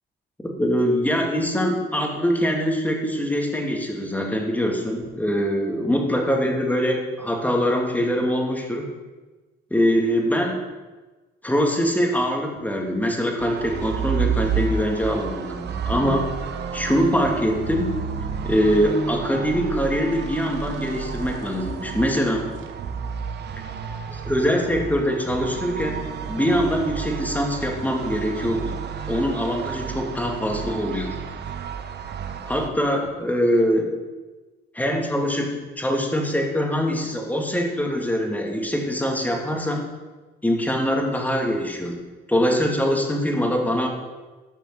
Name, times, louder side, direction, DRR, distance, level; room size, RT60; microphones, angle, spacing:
voice 1, 0.6-8.9 9.7-10.6 11.4-16.3 16.7-17.9 18.4-22.5 24.1-28.8 29.1-31.2 32.5-33.9 34.7-39.9 40.4-42.0 42.3-43.9, equal, 10° left, 1 dB, 2.5 m, -23 dB
sound 1, 13.4-32.7, right 7 dB, 60° right, 1.0 m, -33 dB
sound 2, 13.7-15.1 15.6-21.1 22.6-23.0, right 6 dB, 85° right, 1.4 m, -30 dB
12.5 x 5.7 x 7.5 m, 1.2 s
cardioid pair, 90°, 20 cm